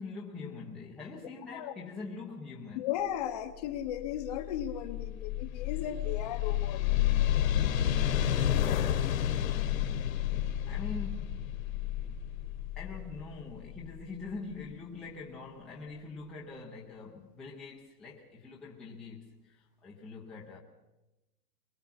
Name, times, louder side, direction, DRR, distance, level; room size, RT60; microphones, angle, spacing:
voice 1, 0.0-2.9 10.7-11.6 12.8-20.6, left 3 dB, ahead, 0.7 m, -44 dB
voice 2, 2.8-6.8, left 10 dB, 25° left, 0.9 m, -36 dB
sound 1, 3.8-14.5, left 11 dB, 55° left, 1.6 m, -31 dB
23.0 x 22.0 x 5.9 m
hypercardioid pair, 165°, 47 cm